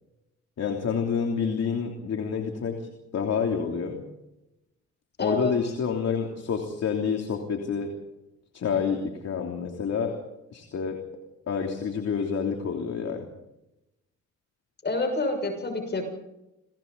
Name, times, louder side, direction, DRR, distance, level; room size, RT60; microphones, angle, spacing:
voice 1, 0.6-4.0 5.2-7.9 8.5-10.2 10.5-11.0 11.5-13.2, left 6 dB, 55° left, 3 dB, 3.2 m, -28 dB
voice 2, 5.2-5.5 14.8-16.0, left 2 dB, 35° left, 4 dB, 6.7 m, -27 dB
29.5 x 22.5 x 4.1 m, 0.91 s
cardioid pair, 90°, 30 cm